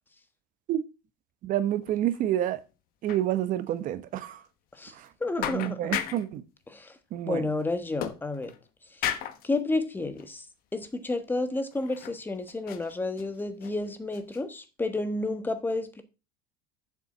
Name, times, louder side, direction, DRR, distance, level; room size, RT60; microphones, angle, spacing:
voice 1, 1.4-2.6 3.0-4.4 4.9-5.1 5.4-6.4 7.1-7.4, right 12 dB, 45° right, 1.1 m, -28 dB
sound 1, 1.8-2.2 2.5-2.6 3.1-3.2 3.7-3.8 4.2-4.4 5.1-5.2 5.4-6.3 8.0-8.7 9.0-9.5 10.2-10.3 10.8-10.9 11.7-12.2 12.5-13.8 14.1-14.4, left 11 dB, 50° left, 1.2 m, -35 dB
voice 2, 5.2-5.9 6.7-7.0 7.2-8.5 8.9-9.2 9.4-10.5 10.7-16.0, left 2 dB, 10° left, 1.3 m, -31 dB
7.3 x 7.0 x 6.2 m
supercardioid pair, 135°, 19 cm